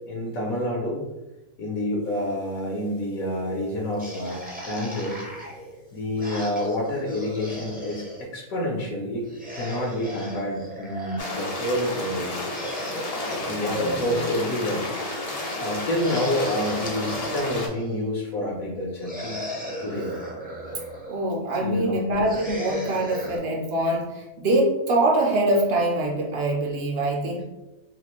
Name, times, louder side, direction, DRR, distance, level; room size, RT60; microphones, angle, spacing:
voice 1, 0.1-1.0 1.6-5.2 5.9-9.2 9.5-12.3 13.5-14.8 15.4-19.4 19.8-20.1 21.6-22.0, left 1 dB, 70° left, -2 dB, 1.2 m, -28 dB
sound 1, 4.0-8.2 9.2-11.4 12.3-14.6 15.8-18.0 19.0-21.2 22.2-23.4, equal, 10° right, 0.4 m, -36 dB
sound 2, 11.2-17.7, left 2 dB, 50° left, 0.4 m, -31 dB
voice 2, 13.6-14.2 21.1-27.4, right 1 dB, 55° right, -1 dB, 0.8 m, -24 dB
4.0 x 2.5 x 2.9 m, 1.0 s
omnidirectional pair, 1.5 m